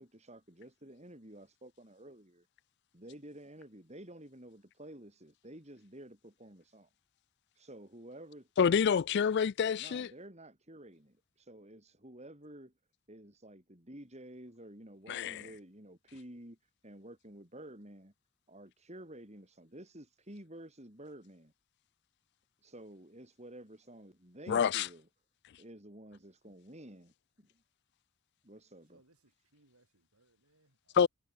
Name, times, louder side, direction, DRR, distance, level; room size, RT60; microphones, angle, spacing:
voice 1, 0.0-2.5 2.9-6.9 7.6-9.0 9.8-12.7 13.1-16.6 16.8-18.1 18.5-21.5 22.6-25.1 25.6-27.1 28.4-29.0, right 1 dB, 30° right, 5.2 m, -51 dB
voice 2, 8.6-10.1 15.1-15.4 24.5-24.9 30.9-31.1, left 7 dB, 50° left, 0.3 m, -27 dB
voice 3, 28.9-31.0, right 2 dB, 85° right, 3.8 m, -69 dB
head